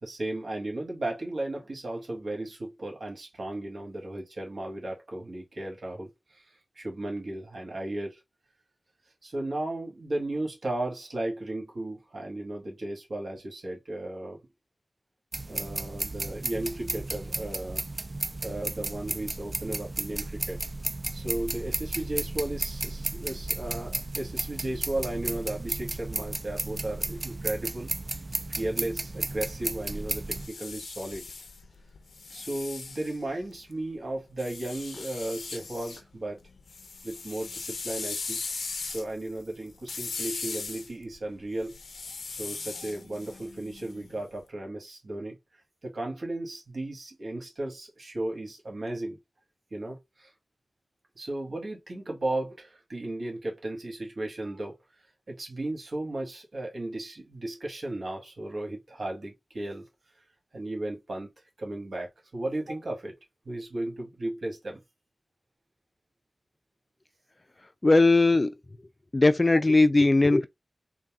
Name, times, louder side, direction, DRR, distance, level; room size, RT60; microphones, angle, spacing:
voice 1, 0.0-8.2 9.2-14.4 15.5-17.8 18.4-20.6 21.1-27.9 28.5-31.3 32.3-36.4 37.0-38.4 38.9-41.8 42.3-45.4 45.8-49.2 49.7-50.3 51.2-54.8 55.3-59.9 60.5-61.3 61.6-63.1 63.5-64.8, right 1 dB, 70° right, 1.8 m, -35 dB
sound 1, 15.3-30.5, right 2 dB, 35° right, 0.4 m, -34 dB
sound 2, 30.2-33.7 34.4-36.0 36.4-44.3, left 4 dB, 90° left, 0.6 m, -39 dB
voice 2, 67.8-68.5 69.1-70.5, left 2 dB, 35° left, 0.4 m, -19 dB
4.0 x 2.3 x 3.6 m
wide cardioid pair, 70°, 0 cm